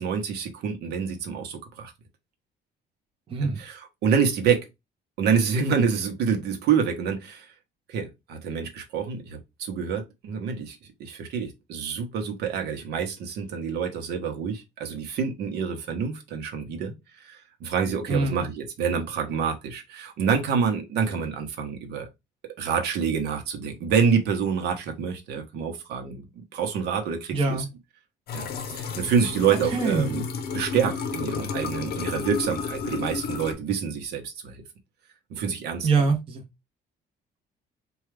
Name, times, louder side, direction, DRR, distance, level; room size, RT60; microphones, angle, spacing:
voice 1, 0.0-1.9 3.4-4.7 5.2-7.5 7.9-22.1 22.6-27.6 28.3-28.4 28.7-30.2 30.5-34.6 35.3-35.9, right 6 dB, 65° right, 0.9 m, -27 dB
voice 2, 3.3-3.6 18.1-18.4 27.3-27.6 29.7-30.1 35.8-36.4, right 4 dB, 30° right, 0.8 m, -24 dB
sound 1, 28.3-33.5, left 5 dB, 60° left, 0.7 m, -32 dB
4.5 x 2.3 x 3.2 m
cardioid pair, 170°, 18 cm